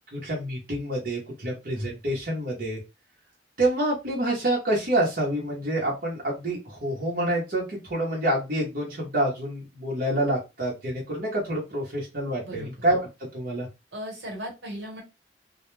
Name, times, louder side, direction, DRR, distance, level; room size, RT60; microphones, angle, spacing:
voice 1, 0.1-2.8 3.6-13.0 13.3-13.7, right 1 dB, 55° right, -3 dB, 0.8 m, -27 dB
voice 2, 13.9-15.0, equal, 80° right, -1 dB, 1.1 m, -36 dB
2.2 x 2.1 x 3.1 m, 0.26 s
head